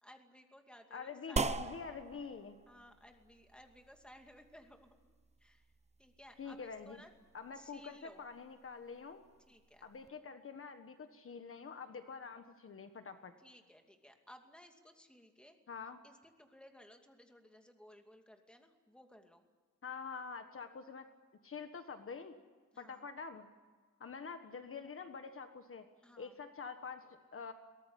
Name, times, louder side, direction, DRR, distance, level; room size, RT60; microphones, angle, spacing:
voice 1, 0.0-1.8 2.7-5.1 5.4-5.7 6.0-7.1 7.5-8.2 9.5-9.9 13.4-15.6 16.0-19.4 22.7-23.1 26.0-26.4, left 1 dB, 5° left, 4 dB, 2.5 m, -59 dB
voice 2, 0.9-2.6 6.4-7.0 7.3-9.2 9.8-13.3 15.7-16.0 19.8-21.1 21.4-22.3 22.8-23.5 24.0-25.9 26.2-27.5, left 5 dB, 45° left, 8 dB, 1.5 m, -46 dB
sound 1, 1.4-10.1, right 4 dB, 20° right, 0.9 m, -44 dB
23.0 x 18.0 x 10.0 m, 1.5 s
wide cardioid pair, 145°, 30 cm